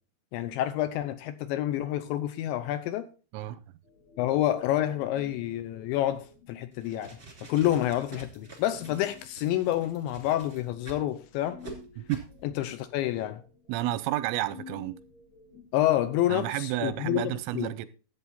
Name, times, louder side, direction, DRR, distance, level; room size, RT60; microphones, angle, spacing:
voice 1, 0.3-3.1 4.2-7.2 7.5-11.6 12.6-13.4 15.7-17.7, left 13 dB, 80° left, 2.8 m, -28 dB
sound 1, 3.8-15.7, left 5 dB, 55° left, 4.2 m, -53 dB
sound 2, 6.7-11.1 11.6-11.8 12.1-12.3, right 3 dB, 25° right, 1.3 m, -47 dB
voice 2, 13.7-15.0 16.3-17.9, right 15 dB, 90° right, 3.4 m, -31 dB
13.0 x 8.4 x 4.2 m
omnidirectional pair, 5.7 m